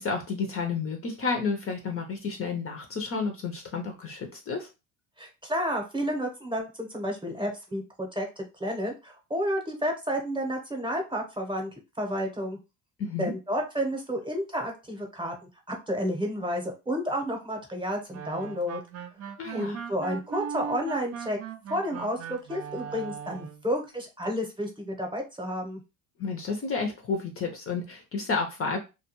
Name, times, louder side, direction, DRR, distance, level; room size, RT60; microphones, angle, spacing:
voice 1, 0.0-4.7 13.0-13.3 19.4-19.8 26.2-28.8, left 4 dB, 35° left, 3 dB, 0.6 m, -31 dB
voice 2, 5.2-11.7 12.0-12.6 13.2-15.3 15.7-18.8 19.5-21.4 21.7-25.8, equal, 10° right, 2 dB, 0.8 m, -31 dB
sound 1, 18.1-23.7, right 8 dB, 40° right, 0.4 m, -39 dB
2.4 x 2.2 x 2.9 m, 0.27 s
supercardioid pair, 90°, 40 cm